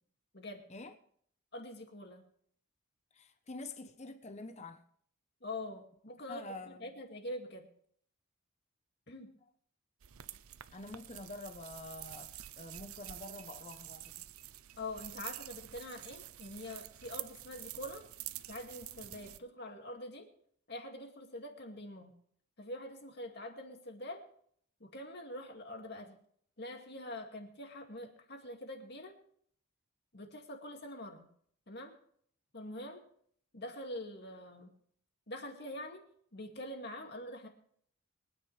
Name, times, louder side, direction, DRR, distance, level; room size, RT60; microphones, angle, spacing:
voice 1, 1.5-2.2 5.4-7.7 9.1-9.3 14.8-18.0 18.5-20.3 20.7-22.1 22.6-24.2 24.8-26.1 26.6-29.1 30.1-31.3 31.7-31.9 32.5-33.0 33.5-34.7 35.3-36.0 36.3-37.5, left 1 dB, 50° left, 2.4 m, -45 dB
voice 2, 3.1-4.8 6.3-7.0 10.7-12.3 12.6-14.1, left 2 dB, 30° left, 1.0 m, -46 dB
sound 1, 10.0-19.4, right 14 dB, 80° right, 0.6 m, -48 dB
24.0 x 9.6 x 3.4 m
head